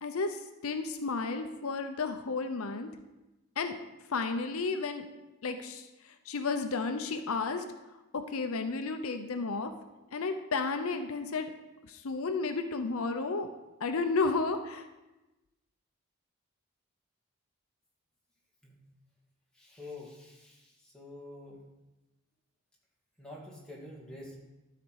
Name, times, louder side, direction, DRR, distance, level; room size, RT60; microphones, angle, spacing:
voice 1, 0.0-2.9 3.6-3.7 4.1-5.1 5.4-7.6 8.1-9.7 10.1-11.5 11.9-13.5 13.8-14.9, left 4 dB, 75° left, 7 dB, 0.6 m, -32 dB
voice 2, 19.6-20.6 20.9-21.6 23.2-24.4, left 2 dB, 5° left, -4 dB, 2.2 m, -46 dB
12.5 x 5.0 x 6.2 m, 1.0 s
head